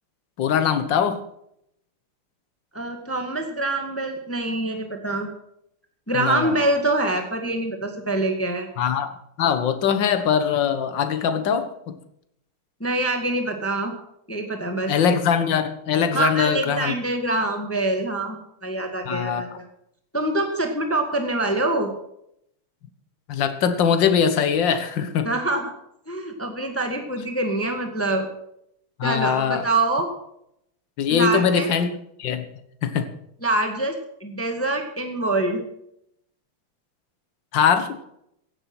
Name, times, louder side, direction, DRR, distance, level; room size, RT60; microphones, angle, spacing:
voice 1, 0.4-1.2 6.1-6.6 8.8-9.1 9.4-12.0 14.9-16.9 19.1-19.4 23.3-25.3 29.0-29.6 31.0-31.9 32.2-32.5 32.8-33.1 37.5-38.0, left 7 dB, 60° left, 1.9 m, -22 dB
voice 2, 2.7-5.3 6.1-8.7 12.8-13.9 14.3-14.9 16.1-19.6 20.1-21.9 25.2-25.7 26.1-28.3 29.0-30.1 31.1-31.7 33.4-33.9 34.2-35.6, right 2 dB, 5° left, 1.5 m, -25 dB
16.0 x 10.5 x 6.1 m
omnidirectional pair, 2.4 m